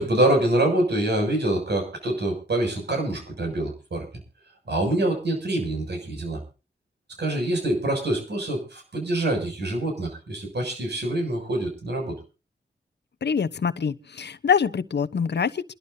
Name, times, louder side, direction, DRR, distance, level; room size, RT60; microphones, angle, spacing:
voice 1, 0.0-4.1 4.7-6.4 7.2-12.2, right 1 dB, 70° right, 7.0 m, -25 dB
voice 2, 13.2-15.7, left 6 dB, 70° left, 0.9 m, -25 dB
28.5 x 12.0 x 2.7 m
cardioid pair, 55°, 18 cm